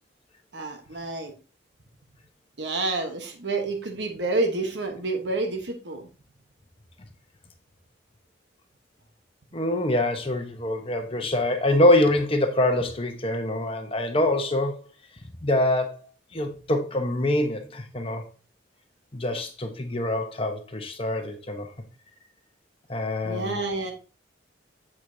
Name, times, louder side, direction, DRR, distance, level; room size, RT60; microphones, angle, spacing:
voice 1, 0.5-1.3 2.6-6.0 23.2-23.9, right 3 dB, 65° right, 1.2 m, -29 dB
voice 2, 9.5-14.8 15.4-18.2 19.1-21.7 22.9-23.6, left 1 dB, 30° left, 1.0 m, -25 dB
8.1 x 7.6 x 2.7 m
head